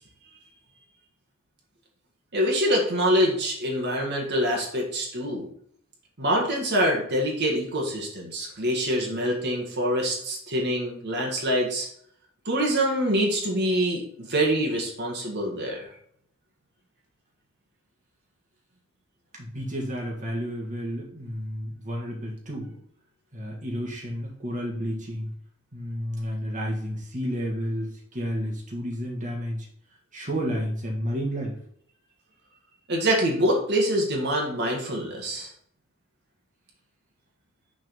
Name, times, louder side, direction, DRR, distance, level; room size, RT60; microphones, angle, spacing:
voice 1, 2.3-5.5 6.2-11.9 12.5-15.8 32.9-35.5, equal, 55° right, -1 dB, 1.8 m, -25 dB
voice 2, 19.4-22.8 23.3-25.3 25.7-29.7 30.1-31.6, equal, 40° right, -2 dB, 1.7 m, -31 dB
6.5 x 4.1 x 5.4 m, 0.66 s
head